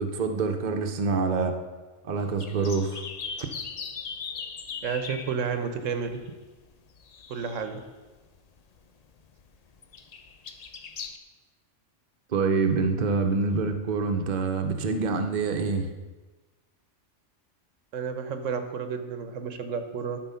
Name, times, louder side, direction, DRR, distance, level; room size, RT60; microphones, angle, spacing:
voice 1, 0.0-1.6 2.0-3.0 12.3-15.9, right 4 dB, 45° right, 5 dB, 0.8 m, -26 dB
sound 1, 2.2-7.9 8.2-11.2, left 5 dB, 50° left, 0.5 m, -40 dB
voice 2, 4.8-6.2 7.3-7.8 17.9-20.2, right 6 dB, 85° right, 8 dB, 1.2 m, -31 dB
12.0 x 4.3 x 5.6 m, 1.2 s
omnidirectional pair, 1.3 m